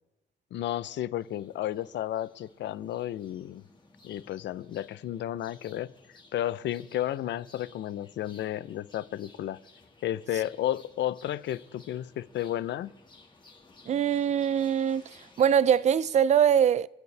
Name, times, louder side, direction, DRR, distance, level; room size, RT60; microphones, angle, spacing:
voice 1, 0.5-3.6 4.0-5.9 6.3-9.6 10.0-12.9, left 12 dB, 75° left, 0.6 m, -32 dB
sound 1, 1.2-16.2, left 3 dB, 25° left, 1.7 m, -57 dB
voice 2, 13.9-15.1 15.4-16.9, right 8 dB, 40° right, 0.4 m, -23 dB
28.5 x 9.5 x 3.3 m
cardioid pair, 135°, 19 cm